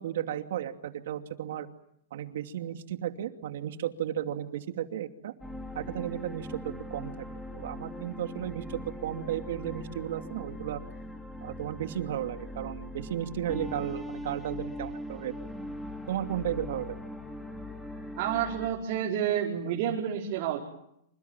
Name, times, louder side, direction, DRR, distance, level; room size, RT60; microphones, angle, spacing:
voice 1, 0.0-1.7 2.1-5.3 5.7-10.8 11.4-15.3 16.1-17.0, right 11 dB, 65° right, 7 dB, 2.7 m, -34 dB
sound 1, 5.4-18.7, left 1 dB, ahead, 3.1 m, -41 dB
voice 2, 18.2-20.6, right 9 dB, 45° right, -1 dB, 4.9 m, -29 dB
28.0 x 26.0 x 7.4 m, 0.75 s
hypercardioid pair, 150°, 0 cm